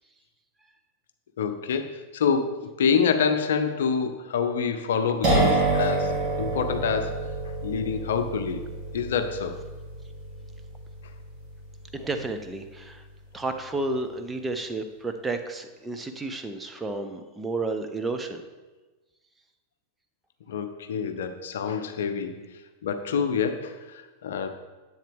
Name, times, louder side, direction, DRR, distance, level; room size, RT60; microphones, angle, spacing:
voice 1, 1.4-7.2 7.6-8.6 8.9-9.6 20.5-22.4 22.8-24.5, left 6 dB, 60° left, 8 dB, 0.7 m, -27 dB
sound 1, 5.2-12.8, right 2 dB, 40° right, 2.8 m, -28 dB
voice 2, 11.9-13.0 13.3-18.4, right 2 dB, 10° right, 6 dB, 0.7 m, -31 dB
10.0 x 7.9 x 3.5 m, 1.2 s
figure-of-eight pair, 90°, 0 cm